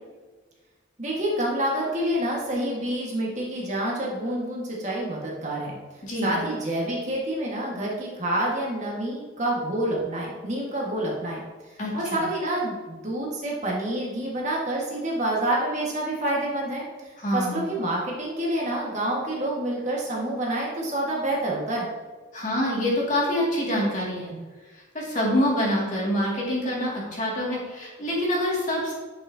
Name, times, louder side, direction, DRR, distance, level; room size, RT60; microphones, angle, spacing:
voice 1, 1.0-5.8 6.2-11.4 11.7-21.9, right 1 dB, 35° right, -4 dB, 1.6 m, -28 dB
voice 2, 6.0-6.4 11.8-12.2 17.2-17.7 22.3-24.3 24.9-28.9, left 1 dB, 40° left, -4 dB, 2.2 m, -26 dB
9.8 x 5.7 x 2.8 m, 1.3 s
head